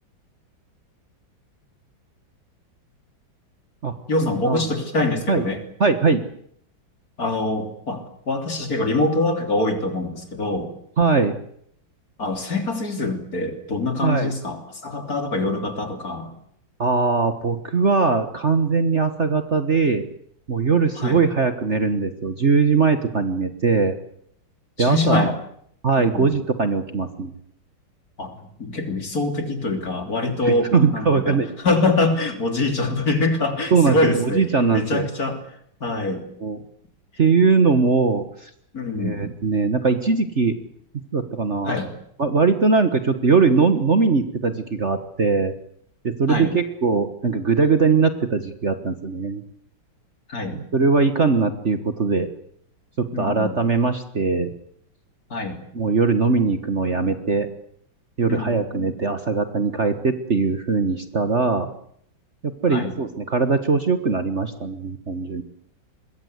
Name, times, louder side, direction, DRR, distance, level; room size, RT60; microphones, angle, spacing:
voice 1, 4.1-5.6 7.2-10.7 12.2-16.3 21.0-21.2 24.8-25.3 26.0-26.3 28.2-34.4 34.7-36.3 38.7-39.2 41.6-42.0 46.3-46.5 50.3-50.6 53.1-53.6 55.3-55.6 58.3-58.8 62.7-62.9, left 2 dB, 45° left, 6 dB, 3.8 m, -24 dB
voice 2, 5.8-6.2 11.0-11.4 14.0-14.3 16.8-20.0 20.5-24.0 24.8-25.3 25.8-27.3 30.4-31.5 33.7-35.1 36.4-36.6 37.2-38.5 39.0-40.5 41.1-41.7 42.2-45.5 46.0-49.4 50.5-52.3 53.0-54.5 55.7-57.5 58.2-61.7 62.4-65.4, right 4 dB, 40° right, 9 dB, 1.6 m, -20 dB
25.0 x 22.0 x 8.1 m, 0.69 s
omnidirectional pair, 2.1 m